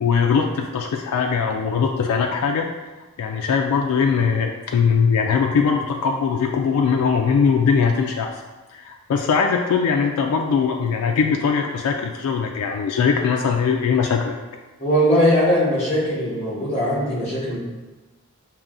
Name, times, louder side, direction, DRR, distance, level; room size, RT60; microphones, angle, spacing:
voice 1, 0.0-2.7 3.2-8.4 8.7-14.4, left 6 dB, 85° left, 2 dB, 0.3 m, -21 dB
voice 2, 14.8-17.6, equal, 30° left, -6 dB, 1.1 m, -20 dB
5.3 x 2.7 x 2.5 m, 1.2 s
head